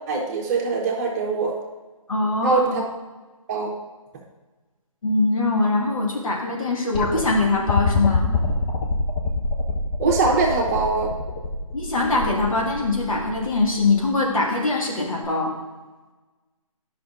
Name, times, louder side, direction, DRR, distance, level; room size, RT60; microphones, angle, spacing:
voice 1, 0.1-1.5 2.4-2.8 3.5-3.7 10.0-11.1, right 4 dB, 30° right, 0 dB, 1.1 m, -22 dB
voice 2, 2.1-2.8 5.0-8.3 11.7-15.5, left 3 dB, 70° left, -2 dB, 2.1 m, -22 dB
sound 1, 6.9-14.1 15.2-15.3, left 3 dB, 10° left, 0.3 m, -25 dB
10.5 x 5.7 x 2.6 m, 1.2 s
figure-of-eight pair, 150°, 18 cm